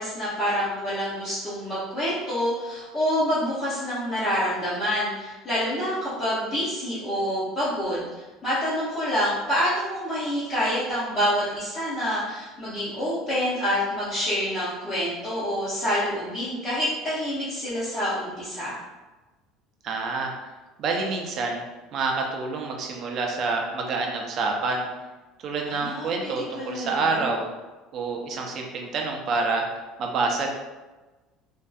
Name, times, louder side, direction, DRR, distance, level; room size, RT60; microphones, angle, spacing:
voice 1, 0.0-18.8 25.6-26.3 26.6-27.3, equal, 25° left, -10 dB, 0.6 m, -27 dB
voice 2, 19.8-20.3 20.8-21.6 21.9-24.9 25.4-27.5 27.9-29.7 30.0-30.5, right 3 dB, 40° right, 1 dB, 0.4 m, -27 dB
2.6 x 2.3 x 2.3 m, 1.2 s
cardioid pair, 165°, 0 cm